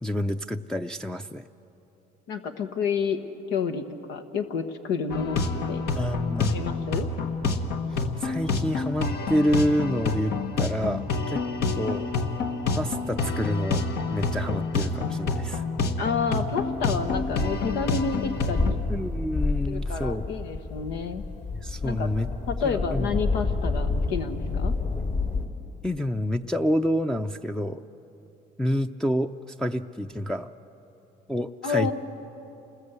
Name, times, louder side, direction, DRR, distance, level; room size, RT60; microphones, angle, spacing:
voice 1, 0.0-1.4 6.0-6.6 7.9-11.4 11.7-12.1 12.7-13.8 14.1-15.6 18.9-20.2 21.6-22.3 22.6-23.1 25.8-27.8 28.6-29.3 29.6-30.5 31.3-31.9, equal, 5° left, 2 dB, 0.5 m, -28 dB
voice 2, 2.3-3.2 3.5-3.8 4.1-5.4 5.7-5.8 6.5-7.1 16.0-18.8 19.7-21.2 21.8-24.7 31.6-31.9, left 5 dB, 85° left, 7 dB, 1.4 m, -29 dB
sound 1, 5.1-18.7, left 3 dB, 70° left, 1.5 m, -28 dB
sound 2, 16.5-25.5, left 3 dB, 45° left, 2.5 m, -29 dB
28.5 x 20.5 x 8.1 m, 2.9 s
cardioid pair, 110°, 17 cm